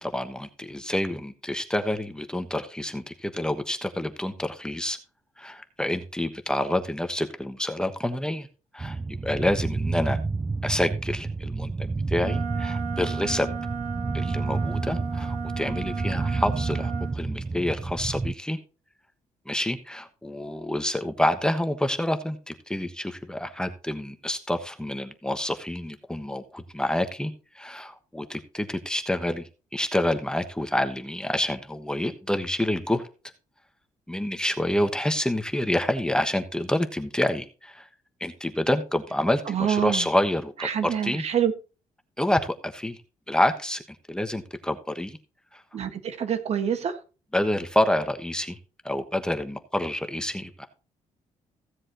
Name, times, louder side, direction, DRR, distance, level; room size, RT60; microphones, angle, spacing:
voice 1, 0.0-5.0 5.4-8.5 8.7-10.2 10.6-13.5 14.1-18.6 19.5-29.4 29.7-33.0 34.1-37.9 38.2-41.2 42.2-43.0 43.3-45.2 45.5-45.6 47.3-48.6 48.8-50.7, left 1 dB, 5° left, 1.2 m, -28 dB
sound 1, 8.8-18.3, right 3 dB, 15° right, 0.4 m, -30 dB
Wind instrument woodwind instrument, 12.2-17.1, right 6 dB, 80° right, 2.4 m, -34 dB
voice 2, 39.5-40.1 40.6-41.5 45.7-47.0, right 8 dB, 55° right, 1.7 m, -26 dB
16.0 x 7.6 x 3.0 m
cardioid pair, 105°, 13 cm